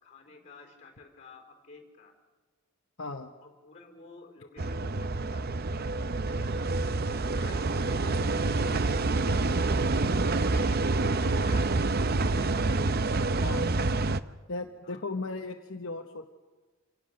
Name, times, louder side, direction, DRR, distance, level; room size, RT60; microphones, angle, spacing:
voice 1, 0.0-2.1 3.4-5.4 5.7-6.5 7.1-8.9 9.3-9.7 10.0-12.9 14.8-15.1, left 3 dB, 35° left, 4 dB, 3.9 m, -50 dB
voice 2, 3.0-3.3 13.4-13.8 14.5-16.3, left 3 dB, 60° left, 3 dB, 1.1 m, -36 dB
sound 1, 4.6-14.2, right 3 dB, 45° right, 0.6 m, -27 dB
27.0 x 18.0 x 6.7 m, 1.3 s
head